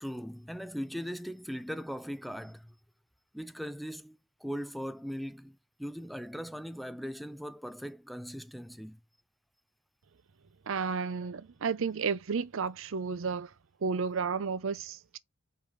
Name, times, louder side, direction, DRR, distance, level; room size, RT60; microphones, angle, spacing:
voice 1, 0.0-2.7 3.3-9.0, equal, ahead, 0.4 m, -39 dB
voice 2, 10.7-13.5 13.8-15.2, right 5 dB, 65° right, 0.6 m, -32 dB
5.6 x 3.3 x 5.0 m
head